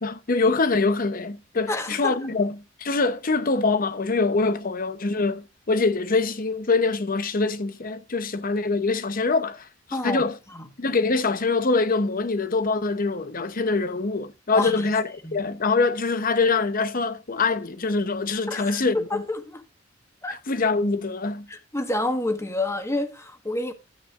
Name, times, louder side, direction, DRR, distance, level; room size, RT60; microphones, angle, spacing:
voice 1, 0.0-10.3 10.8-19.2 20.3-21.5, left 3 dB, 45° left, 0.8 m, -24 dB
voice 2, 1.7-2.2 9.9-10.3 10.5-10.7 14.5-14.9 15.2-15.4 18.5-19.6 20.2-20.4 21.5-23.7, left 2 dB, 15° left, 1.4 m, -28 dB
12.5 x 8.6 x 2.5 m
head